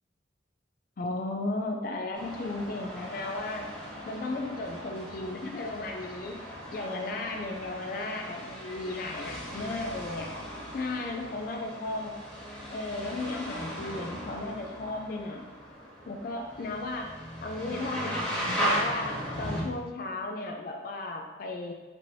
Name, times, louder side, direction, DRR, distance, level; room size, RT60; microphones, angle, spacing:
voice 1, 1.0-3.6 4.1-6.4 6.7-10.3 10.7-12.2 12.7-15.4 16.1-17.1 17.4-21.7, left 2 dB, 50° left, 2 dB, 0.3 m, -35 dB
sound 1, 2.1-19.6, equal, 5° left, 1.2 m, -37 dB
4.4 x 3.1 x 2.6 m, 1.3 s
head